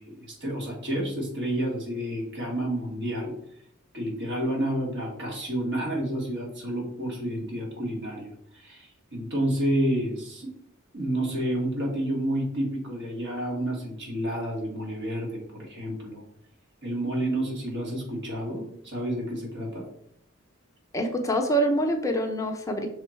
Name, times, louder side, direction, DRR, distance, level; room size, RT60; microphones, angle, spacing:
voice 1, 0.0-3.3 3.9-8.3 8.5-10.5 10.9-16.2 16.8-19.9, right 1 dB, 60° right, -1 dB, 2.1 m, -30 dB
voice 2, 20.9-22.9, right 1 dB, 15° left, 3 dB, 0.7 m, -25 dB
6.2 x 3.8 x 4.5 m, 0.69 s
head